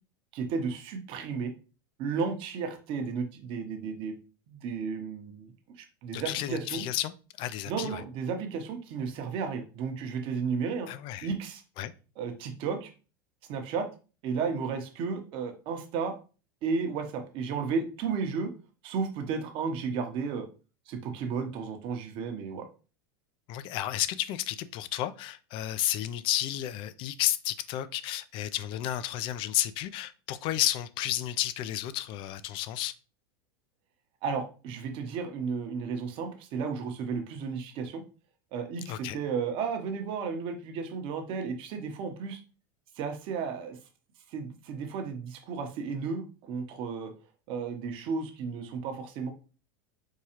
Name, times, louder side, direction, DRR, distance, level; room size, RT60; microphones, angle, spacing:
voice 1, 0.3-1.5 2.0-4.2 4.5-5.5 5.8-6.9 7.7-10.9 11.2-11.6 12.2-12.9 13.5-13.9 14.2-16.1 16.6-18.5 18.8-20.5 20.9-22.7 34.2-38.0 38.5-42.4 43.0-43.8 44.3-47.1 47.5-49.3, right 5 dB, 50° right, 0.9 m, -33 dB
voice 2, 6.1-8.0 10.9-11.3 11.8-11.9 23.5-32.9 38.9-39.2, left 13 dB, 45° left, 0.4 m, -32 dB
4.6 x 2.3 x 2.9 m
hypercardioid pair, 100°, 12 cm